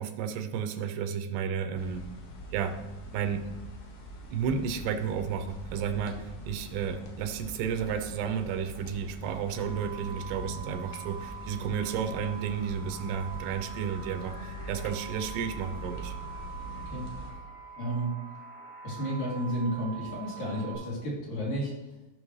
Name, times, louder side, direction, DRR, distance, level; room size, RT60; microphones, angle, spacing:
voice 1, 0.0-2.1 2.5-2.8 3.1-3.5 4.3-16.1, right 7 dB, 85° right, 8 dB, 2.8 m, -32 dB
sound 1, 1.7-17.3, equal, 70° left, 3.0 m, -43 dB
sound 2, 9.5-20.8, right 6 dB, 90° left, 4.4 m, -44 dB
voice 2, 16.7-17.1 17.8-18.2 18.8-21.7, right 1 dB, 55° left, -6 dB, 4.3 m, -32 dB
15.0 x 6.0 x 3.2 m, 1.0 s
omnidirectional pair, 4.7 m